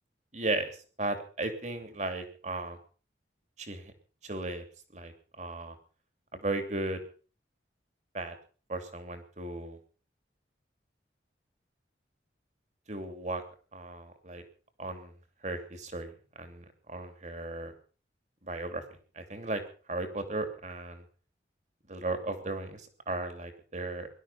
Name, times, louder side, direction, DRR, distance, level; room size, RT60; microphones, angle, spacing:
voice 1, 0.3-2.8 3.6-3.9 4.2-4.6 4.9-5.8 6.3-7.0 8.1-8.3 8.7-9.8 12.9-13.4 13.7-14.4 14.8-15.1 15.4-17.7 18.4-18.8 19.1-19.6 19.9-21.0 21.9-24.1, right 2 dB, 40° right, 7 dB, 2.8 m, -36 dB
20.0 x 12.0 x 5.7 m, 0.40 s
head